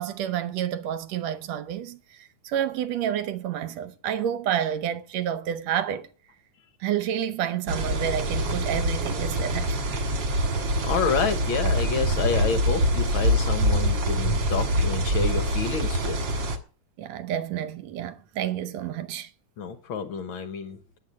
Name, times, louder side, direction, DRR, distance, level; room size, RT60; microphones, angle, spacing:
voice 1, 0.0-6.1 6.8-9.8 17.0-19.3, right 10 dB, 70° right, 1.8 m, -29 dB
sound 1, 7.7-16.6, equal, 45° right, 1.7 m, -25 dB
voice 2, 10.8-16.2 19.6-20.8, left 5 dB, 70° left, 1.2 m, -29 dB
9.9 x 9.0 x 7.4 m
omnidirectional pair, 3.6 m